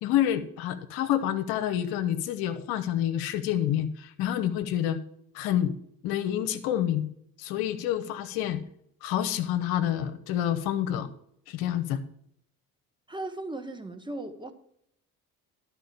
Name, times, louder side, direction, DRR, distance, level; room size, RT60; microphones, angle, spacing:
voice 1, 0.0-5.0 5.3-5.7 6.0-7.1 7.4-8.6 9.0-11.1 11.5-12.0, left 11 dB, 55° left, 0.8 m, -28 dB
voice 2, 13.1-14.5, right 2 dB, 10° right, 1.0 m, -37 dB
11.5 x 4.4 x 6.8 m
figure-of-eight pair, 55°, 45 cm